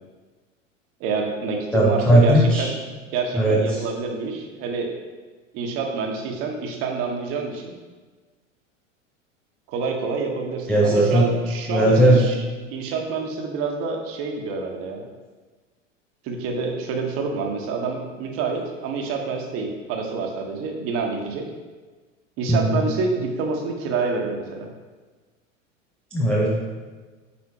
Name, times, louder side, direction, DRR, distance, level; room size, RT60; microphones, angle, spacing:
voice 1, 1.0-2.7 3.1-4.9 5.5-7.7 9.7-12.3 12.7-15.0 16.2-21.5 22.4-24.7, right 4 dB, 35° right, 2 dB, 1.1 m, -27 dB
voice 2, 1.7-2.7 3.3-3.8 10.7-11.3 11.7-12.2 22.5-22.8 26.1-26.5, right 1 dB, 5° left, -5 dB, 0.3 m, -17 dB
8.4 x 4.2 x 2.9 m, 1.3 s
figure-of-eight pair, 85°, 38 cm